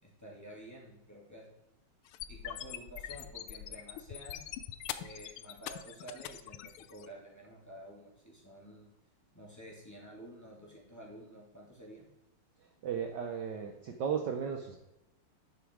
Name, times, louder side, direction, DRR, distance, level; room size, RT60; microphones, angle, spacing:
voice 1, 0.0-1.4 2.3-4.4 4.9-8.9 9.3-12.0, right 1 dB, 10° left, -4 dB, 2.8 m, -50 dB
sound 1, 2.1-7.1, left 12 dB, 85° left, 1.5 m, -43 dB
voice 2, 12.6-14.8, right 7 dB, 60° right, 4 dB, 1.4 m, -35 dB
10.0 x 7.4 x 4.7 m, 0.88 s
omnidirectional pair, 2.4 m